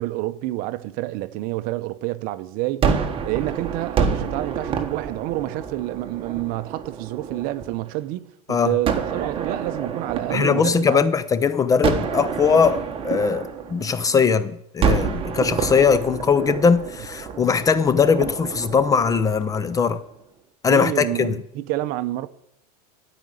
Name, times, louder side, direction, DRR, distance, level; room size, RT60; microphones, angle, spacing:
voice 1, 0.0-2.9 3.2-11.1 20.7-22.3, right 16 dB, 45° right, 0.7 m, -28 dB
Gunshot gunfire, 2.8-7.9 8.8-11.3 11.8-14.3 14.8-20.0, right 6 dB, 25° right, 1.3 m, -28 dB
voice 2, 10.3-20.0 20.6-21.4, left 6 dB, 15° left, 0.4 m, -20 dB
13.0 x 5.1 x 8.9 m
supercardioid pair, 130°, 20 cm